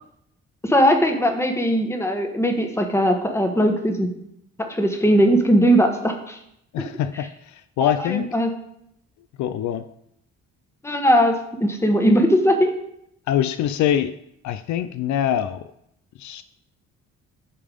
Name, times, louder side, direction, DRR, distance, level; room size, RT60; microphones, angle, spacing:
voice 1, 0.6-4.1 4.6-6.4 7.8-8.5 10.8-11.3 11.6-12.7, equal, 10° left, 4 dB, 1.2 m, -19 dB
voice 2, 6.7-8.3 9.4-9.8 13.3-14.1 14.4-15.7 16.2-16.4, left 10 dB, 70° left, 12 dB, 0.4 m, -24 dB
8.5 x 3.5 x 5.1 m, 0.74 s
cardioid pair, 90°, 30 cm